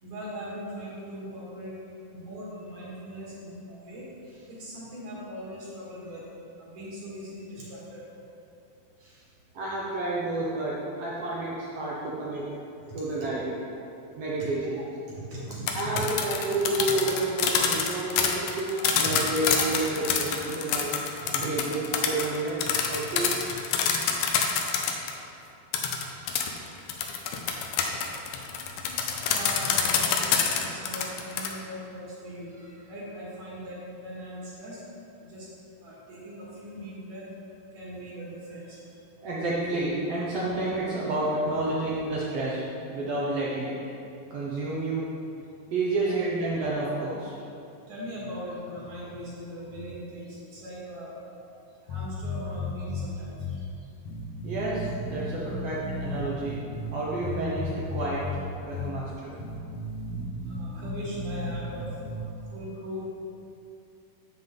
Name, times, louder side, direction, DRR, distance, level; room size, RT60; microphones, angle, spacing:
voice 1, 0.0-1.7 2.1-6.2 6.6-8.0 9.0-9.2 14.8-14.9 15.3-15.4 18.8-18.9 19.2-19.9 20.6-20.7 21.7-22.0 23.4-23.5 29.2-34.8 35.2-35.5 35.8-37.2 37.7-38.8 47.9-51.5 51.9-53.6 60.5-61.8 62.5-63.0, equal, 55° right, -7 dB, 2.8 m, -40 dB
voice 2, 9.5-12.5 12.9-13.6 14.2-14.8 15.7-20.9 21.3-22.6 22.9-23.3 39.2-43.7 44.3-45.1 45.7-47.4 54.4-56.6 56.9-58.2 58.6-59.3, right 2 dB, 75° right, -6 dB, 1.5 m, -30 dB
sound 1, 15.5-25.1 25.7-31.5, left 7 dB, 85° left, 1.8 m, -26 dB
sound 2, 51.9-53.1 53.4-53.6 54.0-56.9 57.2-58.4 58.7-58.9 59.4-62.2, left 2 dB, 65° left, 1.8 m, -34 dB
7.7 x 7.2 x 3.8 m, 2.7 s
omnidirectional pair, 4.2 m